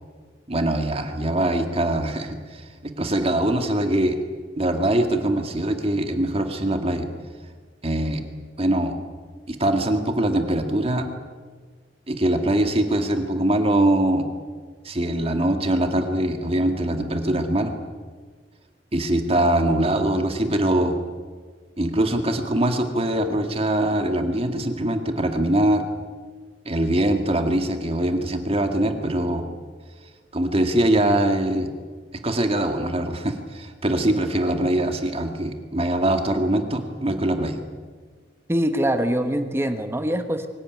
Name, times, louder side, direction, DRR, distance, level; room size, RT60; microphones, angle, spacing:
voice 1, 0.5-4.2 4.6-7.1 7.8-8.2 8.6-8.9 9.5-11.1 12.1-14.3 14.8-17.7 18.9-21.0 21.8-25.8 26.7-29.5 30.3-31.7 32.2-37.6, right 1 dB, 35° right, 5 dB, 2.1 m, -22 dB
voice 2, 38.5-40.5, right 1 dB, 15° right, 7 dB, 1.3 m, -23 dB
24.0 x 17.0 x 9.5 m, 1.5 s
head